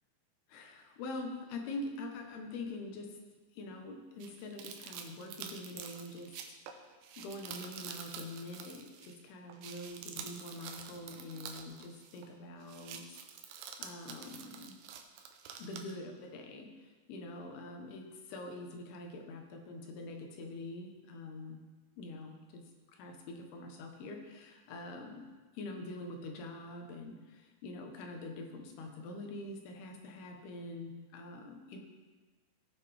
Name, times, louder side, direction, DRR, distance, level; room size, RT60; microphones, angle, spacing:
voice 1, 0.5-3.2 3.5-6.9 7.2-13.2 13.8-14.8 15.6-21.6 22.0-22.6 22.9-31.8, left 2 dB, 80° left, 3 dB, 3.1 m, -45 dB
sound 1, 4.2-9.2 9.5-12.3 12.6-15.9, right 8 dB, 80° right, 2.7 m, -48 dB
17.0 x 6.6 x 3.4 m, 1.3 s
omnidirectional pair, 4.5 m